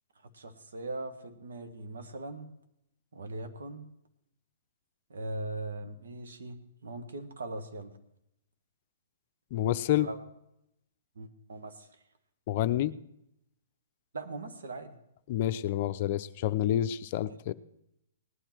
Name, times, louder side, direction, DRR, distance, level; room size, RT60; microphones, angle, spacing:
voice 1, 0.3-2.5 3.1-3.8 5.1-7.9 10.0-10.2 11.1-11.9 14.1-15.0, right 2 dB, 80° right, 6 dB, 1.8 m, -40 dB
voice 2, 9.5-10.1 12.5-12.9 15.3-17.5, left 12 dB, 45° left, 13 dB, 0.6 m, -28 dB
19.0 x 9.8 x 4.6 m, 0.79 s
hypercardioid pair, 135°, 0 cm